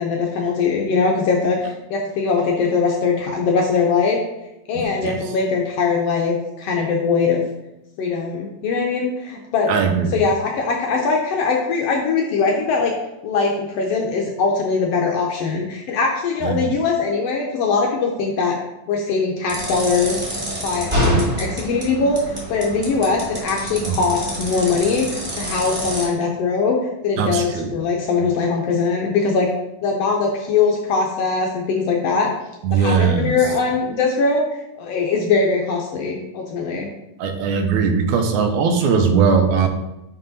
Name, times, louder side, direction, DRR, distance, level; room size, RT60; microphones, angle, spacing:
voice 1, 0.0-4.2 4.7-7.4 8.0-9.7 10.1-12.9 13.2-18.5 18.9-20.2 20.6-26.8 27.0-29.5 29.8-32.3 32.7-36.9, left 4 dB, 75° left, 0 dB, 1.5 m, -21 dB
voice 2, 9.7-10.2 16.4-16.7 21.1-21.3 23.8-24.0 27.2-27.8 32.6-33.5 37.2-39.7, right 6 dB, 85° right, 5 dB, 2.0 m, -19 dB
sound 1, 19.5-26.1, right 1 dB, 45° right, 0.4 m, -27 dB
5.5 x 4.7 x 4.0 m, 0.92 s
omnidirectional pair, 3.4 m